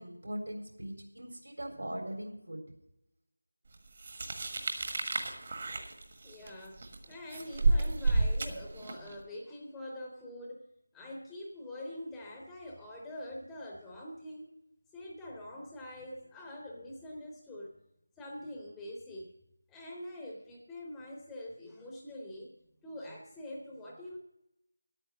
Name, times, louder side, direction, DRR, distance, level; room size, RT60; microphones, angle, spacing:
voice 1, 0.0-2.6, right 1 dB, 70° right, 2 dB, 3.7 m, -40 dB
sound 1, 4.0-9.1, right 2 dB, 35° right, 1.4 m, -31 dB
voice 2, 4.9-5.3 6.2-10.7 10.9-14.5 14.9-17.7 18.2-19.3 19.7-22.5 22.8-24.2, left 1 dB, 5° left, -1 dB, 0.9 m, -45 dB
11.5 x 8.9 x 6.1 m, 0.85 s
figure-of-eight pair, 165°, 0 cm